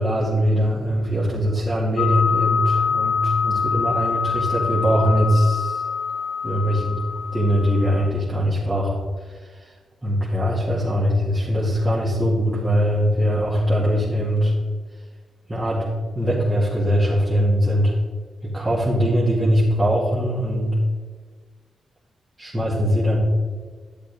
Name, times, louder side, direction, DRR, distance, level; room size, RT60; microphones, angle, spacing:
voice 1, 0.0-5.8 6.4-7.0 7.3-8.9 10.0-14.5 15.5-15.9 16.1-17.9 18.4-20.7 22.4-23.2, equal, 15° right, -8 dB, 2.4 m, -21 dB
sound 1, 2.0-8.1, left 6 dB, 85° left, 1.3 m, -25 dB
11.0 x 7.4 x 3.6 m, 1.5 s
cardioid pair, 85°, 0 cm